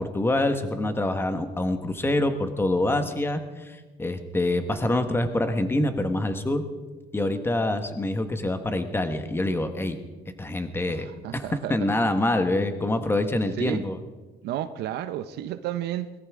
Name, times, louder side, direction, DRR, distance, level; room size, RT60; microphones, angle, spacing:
voice 1, 0.0-6.6 7.1-10.0 10.4-14.0, left 1 dB, 15° left, 1.4 m, -26 dB
voice 2, 10.9-11.8 13.6-13.8 14.4-16.1, right 12 dB, 75° right, 0.7 m, -32 dB
21.0 x 14.0 x 3.7 m
cardioid pair, 110°, 17 cm